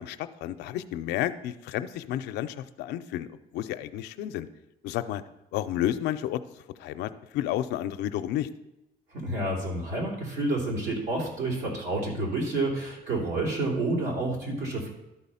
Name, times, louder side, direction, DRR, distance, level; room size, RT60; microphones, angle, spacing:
voice 1, 0.0-3.3 3.5-4.5 4.8-5.2 5.5-6.4 6.8-8.5, left 12 dB, 90° left, 11 dB, 0.5 m, -31 dB
voice 2, 9.1-14.9, right 2 dB, 80° right, -3 dB, 3.2 m, -29 dB
12.5 x 4.2 x 5.6 m, 0.93 s
cardioid pair, 110°, 17 cm